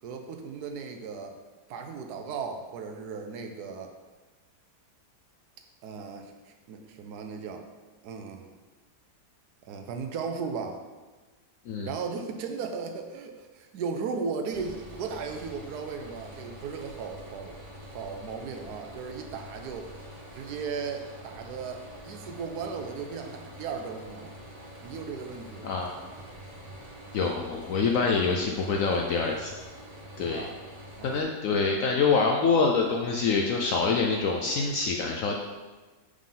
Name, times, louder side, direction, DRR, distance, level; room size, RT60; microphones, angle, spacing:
voice 1, 0.0-1.4 1.7-3.9 5.8-7.6 8.0-8.5 9.6-10.8 11.8-17.6 17.9-19.9 20.3-24.3 24.8-25.8 30.1-30.6 31.0-31.3, right 5 dB, 70° right, 5 dB, 1.1 m, -36 dB
sound 1, 14.5-31.2, equal, 25° right, 0.7 m, -46 dB
voice 2, 25.6-25.9 27.1-29.5 30.2-30.5 31.0-35.4, left 4 dB, 70° left, 1 dB, 0.8 m, -25 dB
5.5 x 4.9 x 3.8 m, 1.3 s
omnidirectional pair, 1.8 m